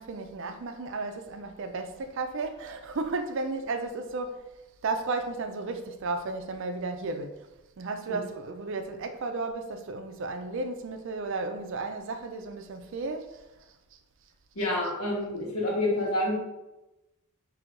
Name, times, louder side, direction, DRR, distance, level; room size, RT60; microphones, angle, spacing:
voice 1, 0.0-4.5 4.8-7.3 7.8-13.4 14.6-14.7, right 3 dB, 60° right, 0.4 m, -34 dB
voice 2, 14.5-16.4, left 1 dB, 85° left, 1.3 m, -28 dB
6.0 x 2.7 x 2.6 m
head